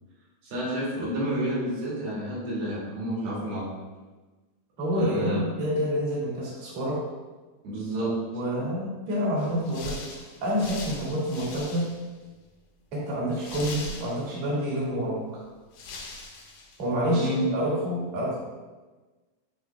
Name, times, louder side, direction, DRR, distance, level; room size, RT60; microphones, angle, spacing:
voice 1, 0.4-3.7 5.0-5.4 7.6-8.2 17.1-17.5, right 1 dB, 90° right, -7 dB, 4.3 m, -30 dB
voice 2, 4.8-7.0 8.0-8.1 8.3-11.9 12.9-15.4 16.8-18.4, equal, 55° right, -7 dB, 3.0 m, -28 dB
sound 1, 9.4-12.1 12.5-12.6 13.3-14.5 15.3-15.4 15.7-16.8, left 2 dB, 80° left, 2.9 m, -40 dB
13.0 x 4.3 x 2.3 m, 1.2 s
omnidirectional pair, 4.2 m